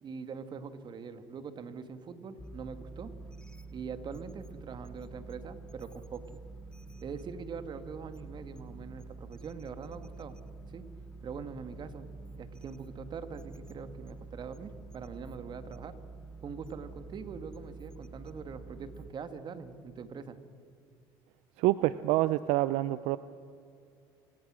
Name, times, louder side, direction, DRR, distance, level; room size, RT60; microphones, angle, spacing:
voice 1, 0.0-3.1 3.7-6.4 7.0-10.4 10.7-10.9 11.2-12.1 12.4-15.9 16.4-20.4, right 5 dB, 45° right, 10 dB, 1.8 m, -43 dB
sound 1, 2.4-19.1, right 3 dB, 5° left, 0.9 m, -48 dB
voice 2, 21.6-23.2, right 16 dB, 75° right, 15 dB, 0.5 m, -27 dB
27.0 x 18.0 x 6.3 m, 2.4 s
supercardioid pair, 80°, 11 cm